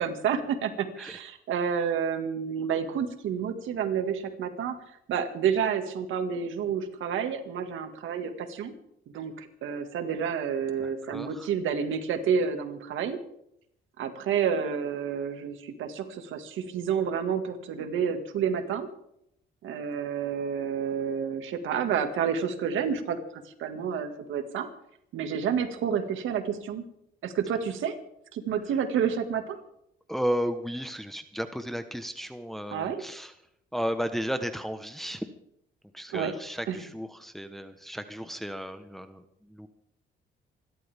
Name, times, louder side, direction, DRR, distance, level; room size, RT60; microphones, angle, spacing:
voice 1, 0.0-4.8 5.1-8.7 9.1-13.2 14.0-18.9 19.6-23.2 23.6-24.7 25.1-26.8 27.2-28.0 28.3-29.6 32.7-33.0 36.1-36.3 36.7-36.8, right 7 dB, 80° right, 7 dB, 2.0 m, -29 dB
voice 2, 10.8-11.5 30.1-33.3 33.7-35.2 35.9-39.7, equal, ahead, 8 dB, 1.1 m, -34 dB
27.5 x 12.5 x 3.6 m, 0.76 s
cardioid pair, 90°, 20 cm